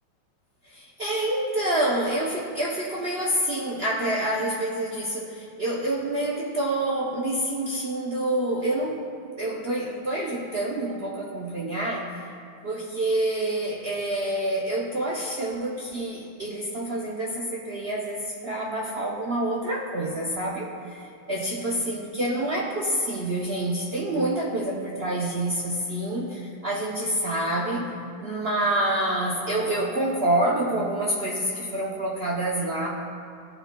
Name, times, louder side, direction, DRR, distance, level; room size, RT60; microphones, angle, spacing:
voice 1, 0.7-9.0 9.4-12.3 12.6-27.9 28.2-32.9, right 1 dB, 65° right, -4 dB, 0.6 m, -27 dB
15.0 x 7.1 x 2.2 m, 2.5 s
omnidirectional pair, 2.0 m